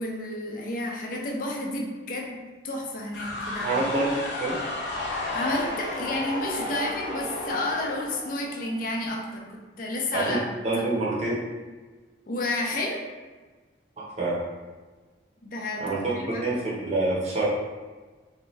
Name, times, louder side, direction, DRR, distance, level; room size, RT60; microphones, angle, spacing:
voice 1, 0.0-3.8 5.2-10.5 10.8-10.9 12.3-13.1 15.4-16.7, left 1 dB, 45° left, 0 dB, 0.4 m, -31 dB
sound 1, 3.1-8.9, left 2 dB, 70° left, 0.8 m, -33 dB
voice 2, 3.6-4.1 4.4-4.6 10.1-10.4 10.6-11.3 14.0-14.4 15.8-16.0 16.3-17.4, right 2 dB, 35° right, -6 dB, 0.7 m, -26 dB
2.7 x 2.3 x 3.1 m, 1.3 s
head